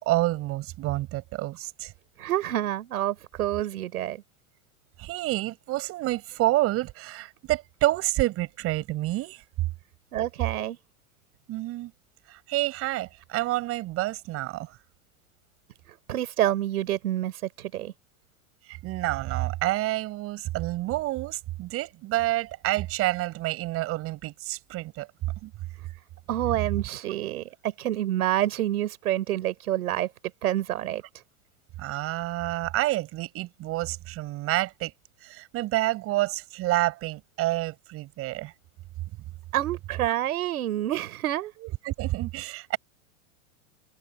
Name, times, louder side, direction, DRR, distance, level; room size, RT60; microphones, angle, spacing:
voice 1, 0.0-1.9 5.0-9.4 11.5-11.9 12.3-14.8 18.7-25.1 25.4-25.5 31.8-34.9 35.2-38.5 41.8-42.8, right 17 dB, 30° right, 7.9 m, -28 dB
voice 2, 2.2-4.2 10.1-10.8 15.9-17.9 26.3-30.1 30.4-31.0 39.5-41.5, right 13 dB, 80° right, 5.3 m, -28 dB
supercardioid pair, 160°, 44 cm